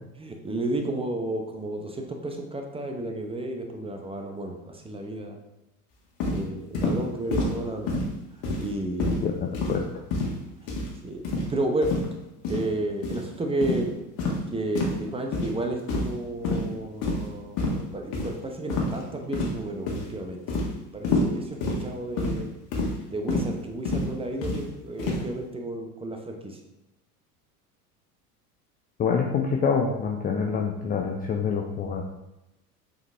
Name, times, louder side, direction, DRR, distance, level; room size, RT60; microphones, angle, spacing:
voice 1, 0.2-5.4 6.3-7.9 8.6-9.3 11.0-11.9 12.5-13.9 14.5-20.4 20.9-22.5 23.1-26.6, right 1 dB, 10° right, 3 dB, 0.8 m, -32 dB
sound 1, 6.2-6.4 6.7-7.0 7.3-7.5 7.9-8.1 8.4-8.7 9.0-9.2 9.5-9.8 10.1-10.4 10.7-10.9 11.2-11.5 11.8-12.0 12.4-12.6 13.0-13.2 13.6-13.8 14.2-14.4 14.7-15.0 15.3-15.5 15.9-16.2 16.4-16.6 17.0-17.3 17.6-17.8 18.1-18.3 18.7-19.0 19.3-19.6 19.9-20.1 20.5-20.7 21.0-21.3 21.6-21.8 22.2-22.4 22.7-22.9 23.3-23.5 23.8-24.1 24.4-24.6 25.0-25.2, left 2 dB, 50° left, 1.7 m, -27 dB
voice 2, 9.2-9.9 29.0-32.0, left 6 dB, 20° left, 2 dB, 0.4 m, -26 dB
7.1 x 3.9 x 3.3 m, 0.93 s
hypercardioid pair, 80°, 46 cm